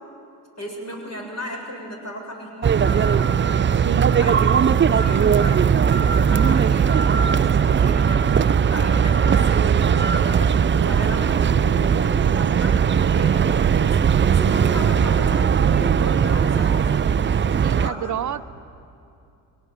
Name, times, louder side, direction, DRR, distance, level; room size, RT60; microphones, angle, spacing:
voice 1, 0.6-3.6 4.2-12.8 13.1-18.1, equal, 35° left, 0 dB, 7.4 m, -35 dB
sound 1, 2.6-17.9, right 7 dB, 25° right, 0.5 m, -18 dB
voice 2, 3.8-4.5 10.8-11.1 13.5-13.7 17.6-18.4, right 9 dB, 40° right, 13 dB, 0.9 m, -30 dB
21.5 x 18.5 x 9.5 m, 2.6 s
hypercardioid pair, 50°, 44 cm